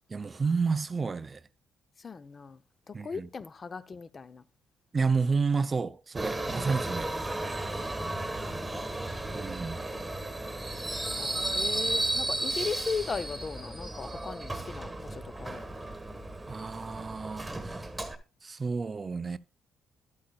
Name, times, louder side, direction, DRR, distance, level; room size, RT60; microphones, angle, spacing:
voice 1, 0.1-1.4 2.9-3.3 4.9-7.1 9.3-9.8 16.5-17.9 18.4-19.4, right 4 dB, 30° right, 0.4 m, -30 dB
voice 2, 2.0-2.6 2.9-4.4 6.5-7.4 8.4-9.0 11.2-15.7, left 5 dB, 35° left, 0.6 m, -38 dB
Subway metro underground, 6.2-18.2, right 2 dB, 15° right, 1.3 m, -34 dB
12.0 x 8.5 x 2.3 m
cardioid pair, 90°, 0 cm